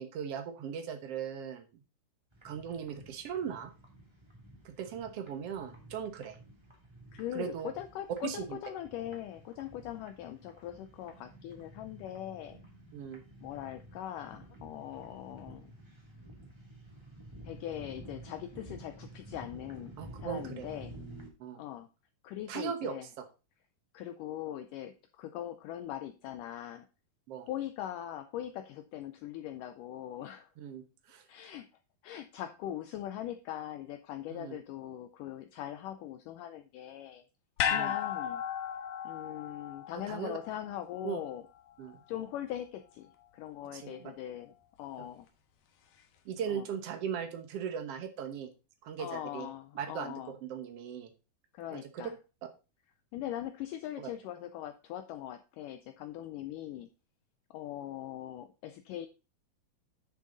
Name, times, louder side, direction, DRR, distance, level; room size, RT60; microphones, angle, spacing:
voice 1, 0.0-1.6 2.4-3.7 4.6-6.4 7.3-7.7 8.2-8.6 12.9-13.2 20.0-20.7 21.4-21.6 22.5-23.2 27.3-27.5 30.6-31.3 34.3-34.6 37.6-38.0 40.1-40.4 41.0-41.2 41.8-42.0 43.7-44.1 46.2-48.5 48.8-49.5 49.7-51.1 51.7-52.1 54.0-54.1, right 8 dB, 75° right, 7 dB, 1.3 m, -38 dB
sound 1, 2.3-21.3, right 1 dB, 10° right, 1.7 m, -52 dB
voice 2, 7.1-12.6 13.4-15.7 17.4-20.9 21.5-21.9 22.2-23.1 23.9-26.9 27.4-30.5 31.3-31.7 32.0-37.2 37.6-38.4 39.0-41.4 42.1-45.3 46.5-46.7 49.0-50.3 51.5-52.2 53.1-56.9 57.5-59.1, left 12 dB, 85° left, 10 dB, 1.8 m, -41 dB
sound 2, 37.6-41.9 42.2-42.3, left 9 dB, 70° left, 2.8 m, -35 dB
10.5 x 6.7 x 3.9 m, 0.32 s
omnidirectional pair, 4.5 m